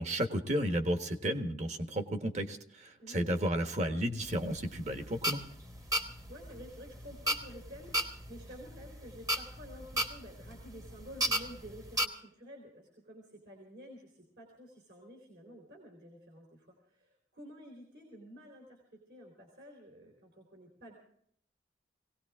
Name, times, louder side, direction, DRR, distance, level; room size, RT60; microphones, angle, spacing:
voice 1, 0.0-5.4, equal, 40° right, 6 dB, 1.4 m, -33 dB
voice 2, 3.0-3.4 6.3-20.9, equal, 65° right, 0 dB, 4.0 m, -51 dB
sound 1, 4.3-12.1, right 1 dB, 20° right, 1.1 m, -34 dB
20.5 x 18.0 x 3.7 m, 0.66 s
head